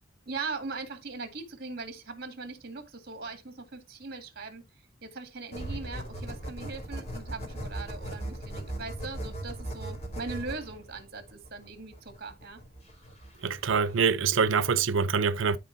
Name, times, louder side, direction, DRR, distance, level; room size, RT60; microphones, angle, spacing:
voice 1, 0.2-4.6 5.0-12.6, right 4 dB, 50° right, 2.0 m, -40 dB
sound 1, 5.5-14.0, right 1 dB, 35° left, 3.3 m, -39 dB
voice 2, 13.4-15.6, right 5 dB, 80° right, 0.6 m, -25 dB
13.0 x 4.4 x 2.7 m
head